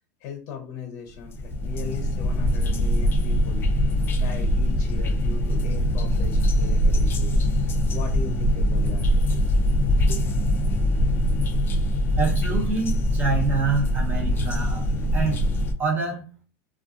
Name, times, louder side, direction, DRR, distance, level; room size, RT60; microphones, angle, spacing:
voice 1, 0.2-3.6 4.1-9.1 9.3-9.5 10.1-10.2 10.7-10.8, left 5 dB, 45° left, 3 dB, 0.7 m, -38 dB
sound 1, 1.2-15.7, equal, 25° left, 0.4 m, -22 dB
voice 2, 12.2-14.9 15.1-15.4 15.8-16.2, right 4 dB, 20° right, -1 dB, 0.9 m, -26 dB
2.5 x 2.3 x 2.4 m, 0.35 s
supercardioid pair, 140°, 9 cm